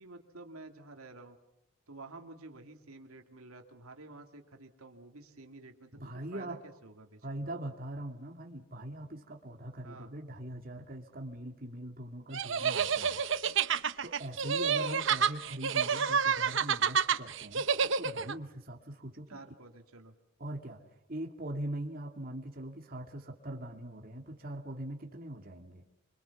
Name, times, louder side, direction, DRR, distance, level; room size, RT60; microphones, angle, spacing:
voice 1, 0.0-1.4 1.9-7.5 9.8-10.1 19.3-20.1, right 2 dB, 90° right, 4 dB, 2.5 m, -51 dB
voice 2, 5.9-6.6 7.2-13.2 14.0-17.7 18.0-19.3 20.4-20.8 21.1-25.8, right 1 dB, 40° right, 1 dB, 2.4 m, -41 dB
sound 1, 12.3-18.3, right 6 dB, 60° right, 0.9 m, -29 dB
25.5 x 25.0 x 7.2 m, 0.83 s
head